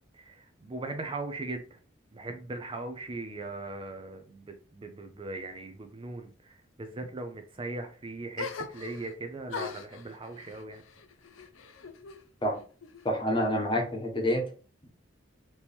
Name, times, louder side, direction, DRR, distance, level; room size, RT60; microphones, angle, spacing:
voice 1, 0.1-1.8 2.1-8.5 8.7-10.8, right 2 dB, 25° right, 6 dB, 0.5 m, -39 dB
sound 1, 8.4-9.2 9.5-12.2 12.5-13.4, left 5 dB, 85° left, 0.6 m, -42 dB
voice 2, 13.0-14.5, equal, 25° left, 1 dB, 1.0 m, -27 dB
4.4 x 2.9 x 3.4 m, 0.37 s
head